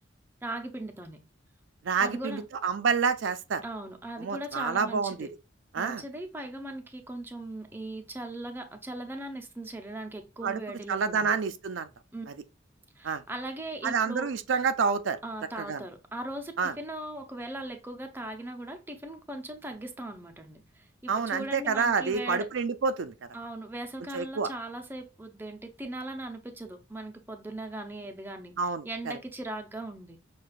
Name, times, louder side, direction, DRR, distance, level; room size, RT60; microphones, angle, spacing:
voice 1, 0.4-1.2 2.0-2.4 3.6-5.3 5.7-11.3 12.1-12.3 13.0-14.3 15.2-22.5 23.3-28.5 28.8-30.2, right 1 dB, 10° right, 0.5 m, -39 dB
voice 2, 1.8-3.6 4.2-5.3 5.7-6.0 10.4-10.6 10.9-11.9 12.3-12.4 13.0-13.2 13.8-15.2 15.6-15.8 16.6-16.7 21.1-23.1 24.1-24.5 28.6-29.1, right 5 dB, 75° right, 0.4 m, -28 dB
6.4 x 2.3 x 2.4 m
head